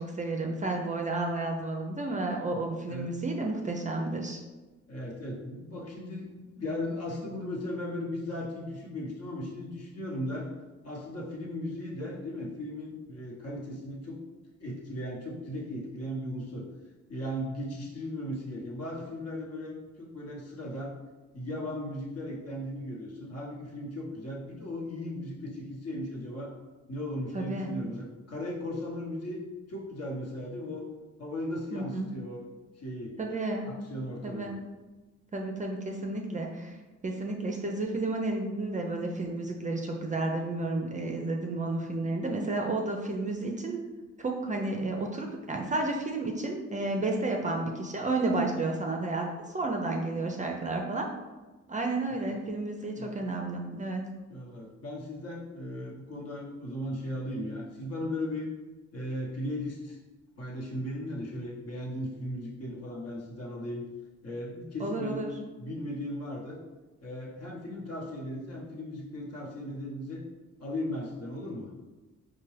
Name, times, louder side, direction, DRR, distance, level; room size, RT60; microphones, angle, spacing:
voice 1, 0.0-4.4 27.3-27.7 31.7-32.1 33.2-33.7 34.2-34.5 35.3-36.8 37.0-43.8 44.2-51.1 51.7-54.0 64.8-65.3, right 2 dB, 25° right, 1 dB, 0.4 m, -31 dB
voice 2, 4.9-10.5 10.8-14.2 14.6-16.7 17.1-20.9 21.3-26.5 26.9-29.4 29.7-30.9 31.2-32.4 32.7-33.2 33.6-34.6 52.1-52.4 53.0-53.1 54.3-58.5 58.9-60.0 60.4-63.8 64.2-65.2 65.6-66.6 67.0-70.2 70.6-71.7, left 1 dB, 55° left, -2 dB, 1.1 m, -37 dB
4.2 x 2.2 x 3.2 m, 1.2 s
cardioid pair, 90°, 30 cm